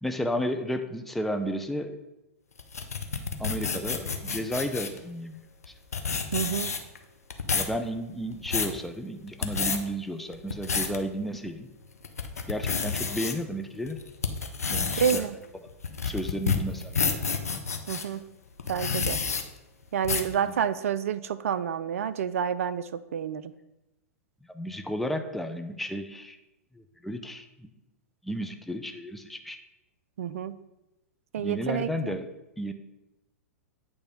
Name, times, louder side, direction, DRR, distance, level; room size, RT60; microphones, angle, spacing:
voice 1, 0.0-2.0 3.4-5.4 5.7-5.8 7.5-11.7 12.5-14.0 14.6-15.3 16.0-17.1 20.5-20.6 24.5-26.4 26.7-27.7 28.2-29.6 31.4-32.3 32.6-32.7, equal, ahead, 6 dB, 0.5 m, -33 dB
sound 1, 2.6-5.0 5.6-5.7 5.9-7.0 7.3-7.7 8.2-8.8 9.3-9.8 10.3-11.0 11.5-11.6 12.0-13.3 13.9-18.0 18.6-19.4 20.0-20.3, left 5 dB, 85° left, 0.7 m, -29 dB
voice 2, 6.3-6.7 15.0-15.4 17.9-18.2 18.7-19.2 19.9-23.5 30.2-30.6 31.3-32.2, right 8 dB, 65° right, 15 dB, 0.4 m, -29 dB
8.6 x 3.3 x 5.2 m, 0.96 s
figure-of-eight pair, 105°, 8 cm